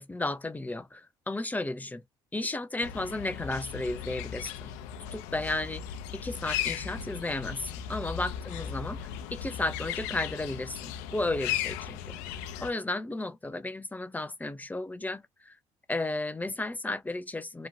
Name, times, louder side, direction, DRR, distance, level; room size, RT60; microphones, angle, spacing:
voice 1, 0.0-2.0 2.3-4.7 5.1-5.9 6.1-12.2 12.6-15.5 15.9-17.7, left 2 dB, 15° left, 0.7 m, -34 dB
sound 1, 2.8-12.7, left 9 dB, 90° left, 0.5 m, -37 dB
3.0 x 2.1 x 2.7 m
supercardioid pair, 70°, 12 cm